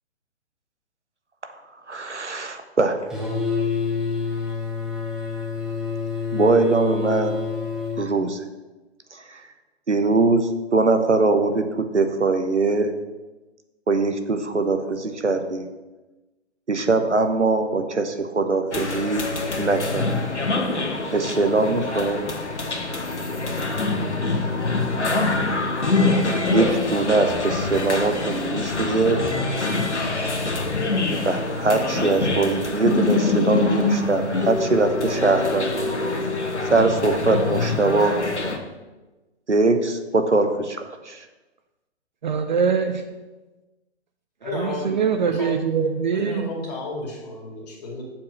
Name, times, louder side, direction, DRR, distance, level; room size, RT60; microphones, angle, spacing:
voice 1, 1.9-3.0 6.3-7.4 8.0-8.4 9.9-12.9 13.9-15.7 16.7-19.3 19.6-20.1 21.1-22.3 26.5-29.2 31.2-35.8 36.7-38.2 39.5-41.2, right 3 dB, 90° right, 7 dB, 1.0 m, -22 dB
sound 1, 3.1-8.0, left 5 dB, ahead, 0.7 m, -27 dB
sound 2, 18.7-38.6, left 3 dB, 80° left, 1.2 m, -25 dB
voice 2, 42.2-43.1 44.4-46.5, right 6 dB, 45° right, 7 dB, 0.5 m, -23 dB
voice 3, 44.4-44.9 45.2-45.6 46.1-48.0, left 2 dB, 35° left, -1 dB, 2.3 m, -32 dB
7.4 x 4.7 x 6.4 m, 1.1 s
figure-of-eight pair, 130°, 34 cm